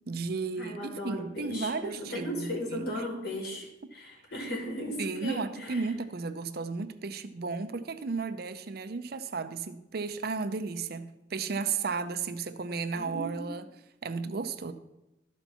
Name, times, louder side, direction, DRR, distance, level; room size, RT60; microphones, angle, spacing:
voice 1, 0.1-0.8 1.0-3.0 5.0-13.7 14.0-14.7, right 4 dB, 60° right, 0.6 m, -34 dB
voice 2, 0.6-5.8 12.9-13.5, equal, 65° left, 2.5 m, -36 dB
12.5 x 4.5 x 5.5 m
head